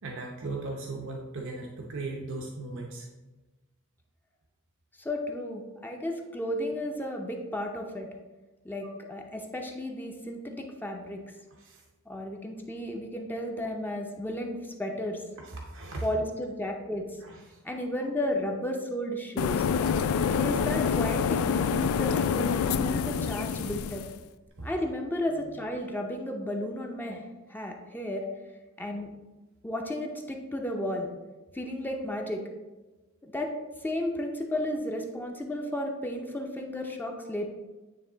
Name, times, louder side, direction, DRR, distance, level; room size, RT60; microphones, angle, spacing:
voice 1, 0.0-3.1 8.8-8.9 11.6-11.8 15.4-16.1 17.2-17.6 19.8-20.4 24.6-24.7, right 3 dB, 65° right, 0 dB, 0.8 m, -38 dB
voice 2, 5.0-8.1 8.6-11.2 12.1-15.2 16.0-17.0 17.6-19.6 20.3-24.0 24.6-27.2 27.5-28.2 28.8-29.1 29.6-31.1 31.5-32.4 33.2-33.5 33.8-37.5, left 1 dB, 10° left, 1 dB, 0.6 m, -33 dB
sound 1, 19.4-24.1, left 6 dB, 75° left, 0.3 m, -27 dB
9.4 x 3.1 x 3.9 m, 1.2 s
head